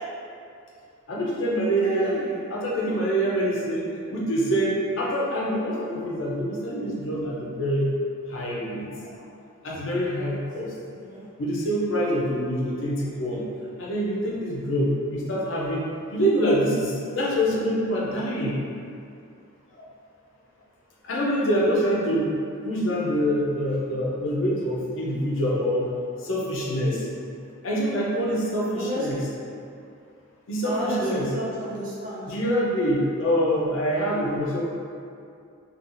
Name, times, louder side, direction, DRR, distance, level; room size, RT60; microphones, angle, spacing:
voice 1, 1.1-2.2 2.5-7.9 8.3-9.1 9.6-10.7 11.4-13.5 13.8-18.6 19.7-19.9 21.0-22.3 22.6-25.9 26.2-27.1 27.6-29.3 30.5-31.3 32.3-34.6, equal, 60° left, -5 dB, 0.6 m, -25 dB
voice 2, 1.8-2.4 10.1-10.4 10.9-11.3 28.7-29.3 30.6-32.3, equal, 40° right, -7 dB, 0.5 m, -32 dB
3.8 x 2.4 x 2.5 m, 2.4 s
head